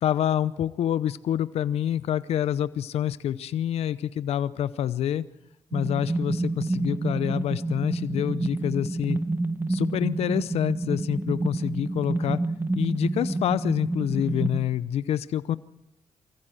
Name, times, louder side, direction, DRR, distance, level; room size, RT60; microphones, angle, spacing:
voice 1, 0.0-5.2 5.7-9.2 9.7-12.4 12.7-15.6, left 10 dB, 75° left, 16 dB, 0.7 m, -27 dB
sound 1, 5.7-14.6, right 2 dB, 20° right, 1.9 m, -28 dB
24.0 x 14.5 x 7.8 m, 0.86 s
supercardioid pair, 60°, 11 cm